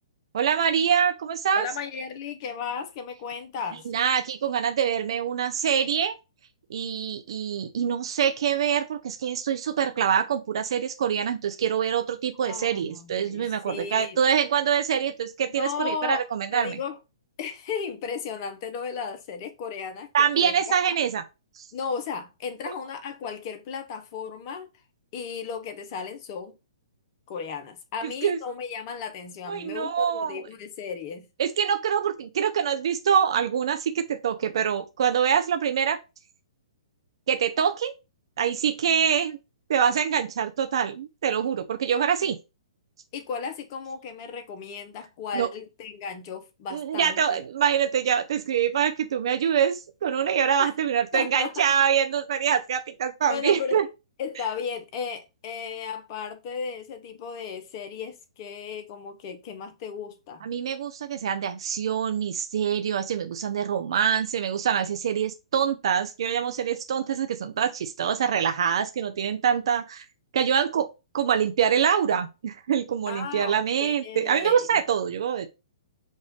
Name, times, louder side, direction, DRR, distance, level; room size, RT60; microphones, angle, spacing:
voice 1, 0.3-1.7 3.9-6.2 6.7-16.8 20.1-21.2 21.6-21.7 28.2-28.4 29.5-30.4 31.4-36.0 37.3-37.9 38.4-39.4 39.7-42.4 45.3-45.5 46.7-53.8 60.4-70.0 70.3-70.9 71.1-75.5, right 8 dB, 60° right, 0.6 m, -25 dB
voice 2, 1.5-3.9 12.5-14.2 15.6-16.2 16.5-17.0 17.4-21.0 21.7-24.7 25.1-26.5 27.3-31.3 42.2-42.3 43.1-47.4 50.6-50.7 51.1-51.6 53.3-53.8 54.2-60.5 73.1-74.7, left 6 dB, 40° left, 0.9 m, -35 dB
5.3 x 2.6 x 3.7 m
hypercardioid pair, 125°, 3 cm